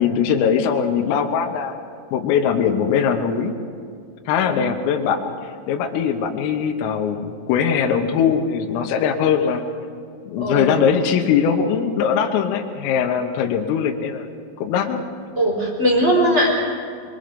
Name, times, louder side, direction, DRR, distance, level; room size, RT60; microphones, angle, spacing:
voice 1, 0.0-1.8 2.1-3.6 4.3-9.6 10.3-14.3 14.6-15.0, left 7 dB, 80° left, 3 dB, 3.7 m, -21 dB
voice 2, 10.4-10.8 15.4-16.5, equal, 15° right, -1 dB, 3.5 m, -19 dB
24.5 x 22.5 x 5.2 m, 2.2 s
omnidirectional pair, 5.9 m